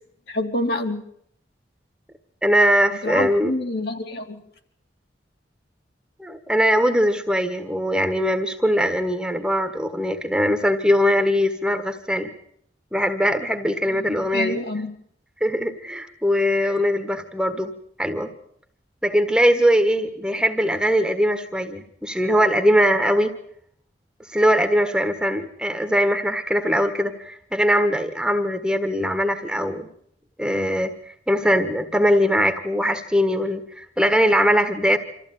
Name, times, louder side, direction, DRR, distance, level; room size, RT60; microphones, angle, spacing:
voice 1, 0.3-1.0 3.0-4.4 13.9-14.9, left 2 dB, 60° left, 3 dB, 3.0 m, -27 dB
voice 2, 2.4-3.5 6.2-12.3 12.9-14.6 15.4-17.7 18.0-18.3 19.0-23.3 24.3-29.9 30.4-30.9 31.3-35.0, equal, 5° right, 8 dB, 1.5 m, -21 dB
26.5 x 14.5 x 9.4 m, 0.68 s
head